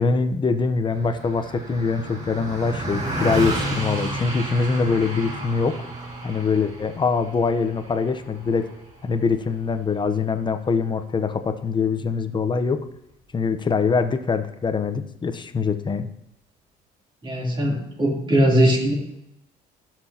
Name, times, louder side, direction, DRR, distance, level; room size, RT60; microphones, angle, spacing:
voice 1, 0.0-5.7 6.2-8.7 9.0-12.8 13.3-16.1, left 5 dB, 25° left, 9 dB, 0.8 m, -23 dB
Car passing by, 0.9-10.5, right 1 dB, 50° right, 3.6 m, -32 dB
voice 2, 17.2-19.0, equal, 30° right, -2 dB, 3.3 m, -20 dB
16.0 x 6.1 x 2.9 m, 0.84 s
cardioid pair, 110°, 17 cm